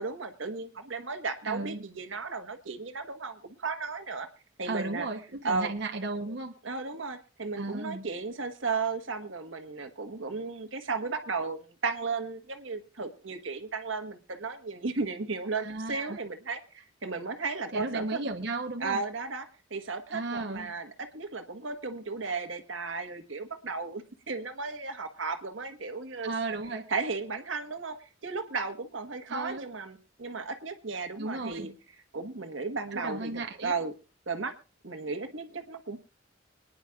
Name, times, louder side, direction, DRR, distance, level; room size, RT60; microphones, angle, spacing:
voice 1, 0.0-4.3 4.6-5.1 5.4-5.7 6.6-18.2 18.8-26.3 26.9-31.7 32.1-33.9 34.3-34.5 34.8-36.0, right 4 dB, 85° right, 7 dB, 1.4 m, -35 dB
voice 2, 1.4-1.8 4.6-6.5 7.6-8.1 15.6-16.2 17.7-19.0 20.1-20.7 26.2-26.9 29.3-29.7 31.2-31.7 32.9-33.7, right 2 dB, 60° right, 3 dB, 1.0 m, -35 dB
25.5 x 10.0 x 2.4 m, 0.32 s
head